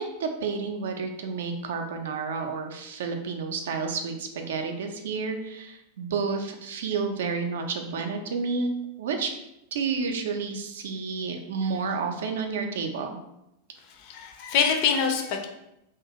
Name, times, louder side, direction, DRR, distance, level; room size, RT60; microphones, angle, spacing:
voice 1, 0.0-8.7 9.0-9.3 9.7-13.2, right 5 dB, 60° right, 5 dB, 0.4 m, -30 dB
voice 2, 13.9-15.5, left 6 dB, 45° left, 4 dB, 0.4 m, -25 dB
2.4 x 2.3 x 2.9 m, 0.86 s
figure-of-eight pair, 90°, 0 cm